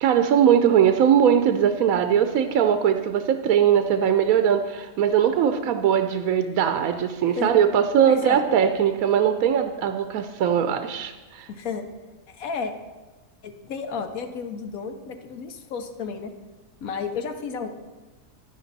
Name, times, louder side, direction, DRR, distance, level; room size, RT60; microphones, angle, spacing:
voice 1, 0.0-11.5, right 8 dB, 75° right, 7 dB, 1.0 m, -20 dB
voice 2, 8.0-8.4 11.5-11.8 12.3-12.7 13.4-16.3 16.8-17.7, left 5 dB, 70° left, 7 dB, 1.2 m, -32 dB
10.5 x 10.5 x 4.0 m, 1.2 s
omnidirectional pair, 1.6 m